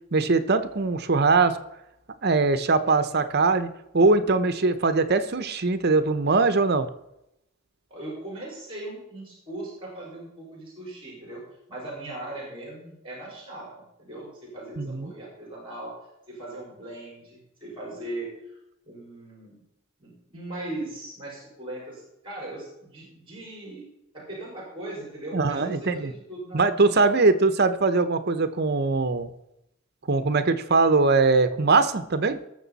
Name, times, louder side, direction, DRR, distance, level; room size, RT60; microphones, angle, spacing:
voice 1, 0.1-1.6 2.2-3.7 3.9-6.9 14.8-15.1 25.3-26.1 26.5-29.3 30.1-32.4, right 3 dB, 50° right, 11 dB, 0.8 m, -21 dB
voice 2, 7.9-11.4 11.7-15.9 16.3-18.6 18.9-19.6 20.0-23.8 24.1-27.1, right 1 dB, 25° right, -4 dB, 5.1 m, -39 dB
19.5 x 7.0 x 4.1 m, 0.85 s
head